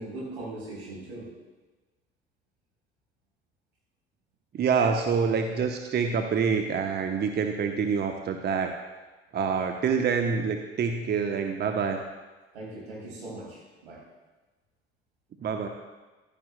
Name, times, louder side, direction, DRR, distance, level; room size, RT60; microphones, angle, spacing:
voice 1, 0.0-1.3 12.5-14.0, right 2 dB, 80° right, -5 dB, 3.5 m, -39 dB
voice 2, 4.5-8.7 9.3-12.0 15.4-15.7, right 6 dB, 30° right, 5 dB, 0.9 m, -26 dB
15.0 x 11.5 x 2.2 m, 1.2 s
figure-of-eight pair, 55°, 32 cm